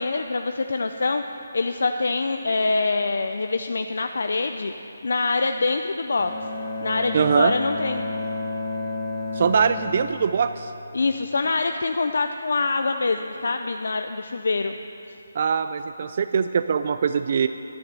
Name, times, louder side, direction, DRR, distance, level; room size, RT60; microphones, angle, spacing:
voice 1, 0.0-4.7 5.0-6.3 6.8-8.1 10.9-14.7, left 3 dB, 70° left, 7 dB, 0.5 m, -25 dB
Bowed string instrument, 6.2-11.2, left 2 dB, 20° left, 1.1 m, -32 dB
voice 2, 7.1-7.5 9.4-10.7 15.4-17.5, right 6 dB, 40° right, 11 dB, 0.3 m, -22 dB
10.5 x 10.5 x 6.8 m, 2.8 s
hypercardioid pair, 170°, 0 cm